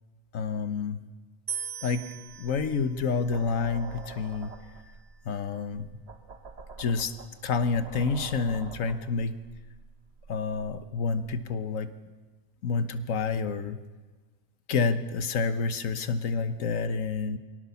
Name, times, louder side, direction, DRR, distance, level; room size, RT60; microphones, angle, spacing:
voice 1, 0.3-1.0 1.8-2.0 2.4-4.5 5.2-5.9 6.8-7.1 7.4-9.4 10.3-11.9 12.6-13.8 14.7-17.4, left 5 dB, 70° left, 11 dB, 1.5 m, -28 dB
sound 1, 1.5-4.7, right 7 dB, 20° right, 1.0 m, -41 dB
sound 2, 2.3-11.4, right 4 dB, 50° right, 1.8 m, -47 dB
24.0 x 18.0 x 7.0 m, 1.3 s
omnidirectional pair, 1.4 m